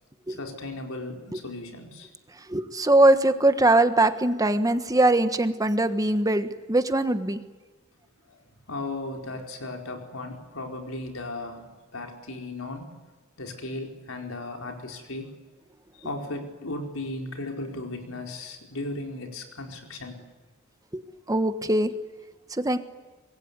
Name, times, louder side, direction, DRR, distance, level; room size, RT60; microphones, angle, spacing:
voice 1, 0.3-2.1 8.2-12.9 13.4-15.3 16.0-20.2 21.8-21.9, left 2 dB, 90° left, 2 dB, 4.8 m, -36 dB
voice 2, 2.5-7.4 20.9-21.0 21.3-21.9 22.6-22.8, right 2 dB, 15° right, 9 dB, 1.3 m, -21 dB
25.0 x 21.5 x 9.6 m, 1.3 s
head